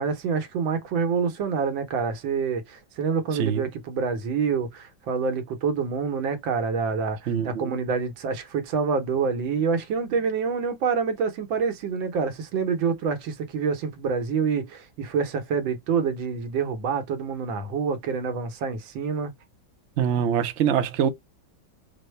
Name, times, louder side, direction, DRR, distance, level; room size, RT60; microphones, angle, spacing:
voice 1, 0.0-19.3, right 5 dB, 90° right, 1.7 m, -27 dB
voice 2, 3.3-3.6 7.3-7.8 20.0-21.1, right 8 dB, 65° right, 0.7 m, -24 dB
5.0 x 2.1 x 3.1 m
omnidirectional pair, 2.0 m